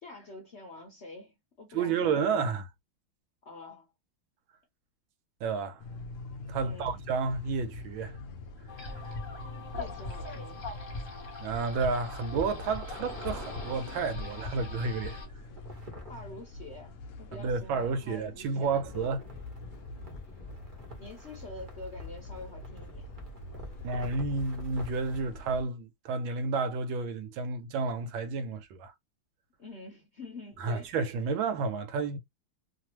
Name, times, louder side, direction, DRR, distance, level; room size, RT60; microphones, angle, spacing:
voice 1, 0.0-2.5 3.4-3.9 6.6-7.0 9.7-10.6 16.1-19.1 21.0-23.1 29.6-30.9, left 2 dB, 50° left, 0.8 m, -46 dB
voice 2, 1.7-2.7 5.4-5.8 6.5-8.2 11.4-15.2 17.4-19.2 23.8-28.9 30.6-32.2, right 4 dB, 90° right, 1.4 m, -31 dB
sound 1, 5.8-25.6, left 2 dB, 80° left, 0.7 m, -45 dB
sound 2, 8.7-15.3, left 3 dB, 25° left, 0.5 m, -41 dB
sound 3, 12.3-13.8 15.5-16.1 18.8-25.2, left 1 dB, 40° right, 0.7 m, -46 dB
3.3 x 2.0 x 3.0 m
omnidirectional pair, 2.2 m